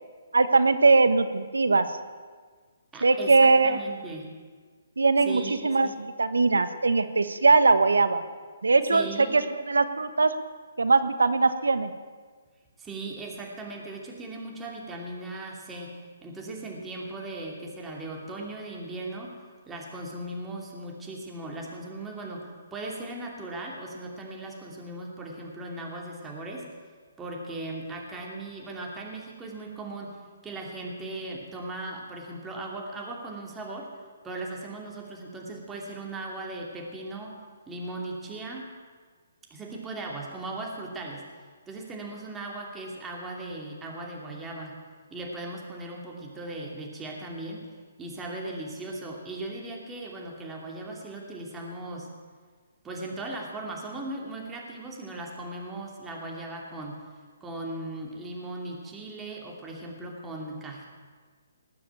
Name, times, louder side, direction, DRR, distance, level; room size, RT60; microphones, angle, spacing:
voice 1, 0.3-1.9 3.0-3.8 5.0-8.2 8.6-10.3 10.8-11.9, right 3 dB, 85° right, 11 dB, 1.2 m, -21 dB
voice 2, 2.9-4.3 5.2-6.0 8.9-9.3 12.8-15.9 16.2-19.4 19.7-26.7 27.2-30.2 30.4-33.9 34.2-37.4 37.7-38.7 39.5-41.3 41.7-44.7 45.1-47.6 48.0-52.1 52.8-57.0 57.4-60.9, right 2 dB, 10° right, -1 dB, 2.7 m, -38 dB
19.5 x 7.0 x 9.0 m, 1.5 s
hypercardioid pair, 140°, 0 cm